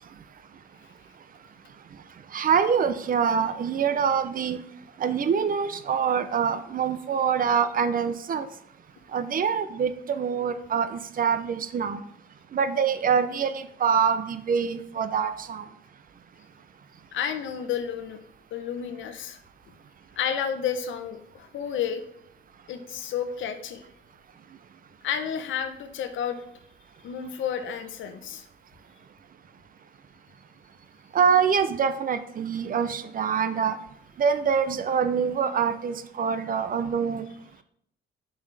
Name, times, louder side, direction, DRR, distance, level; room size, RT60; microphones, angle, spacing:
voice 1, 2.3-4.6 5.0-8.5 9.1-12.0 12.5-15.7 31.1-33.8 34.2-37.3, right 7 dB, 45° right, 11 dB, 0.6 m, -25 dB
voice 2, 17.1-18.2 18.5-19.4 20.2-22.0 22.7-23.8 25.0-26.4 27.0-28.5, left 8 dB, 75° left, 9 dB, 0.8 m, -31 dB
7.0 x 5.5 x 3.3 m, 0.72 s
cardioid pair, 90°, 20 cm